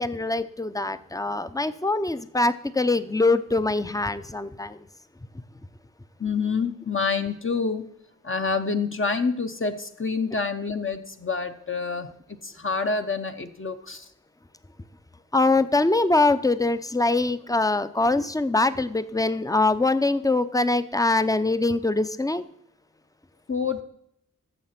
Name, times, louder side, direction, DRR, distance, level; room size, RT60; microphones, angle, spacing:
voice 1, 0.0-4.9 15.3-22.4, left 2 dB, 10° left, 12 dB, 0.7 m, -23 dB
voice 2, 6.2-7.8 8.2-14.1 23.5-23.8, left 4 dB, 40° left, 6 dB, 0.9 m, -27 dB
14.5 x 6.4 x 5.9 m, 0.76 s
wide cardioid pair, 50°, 32 cm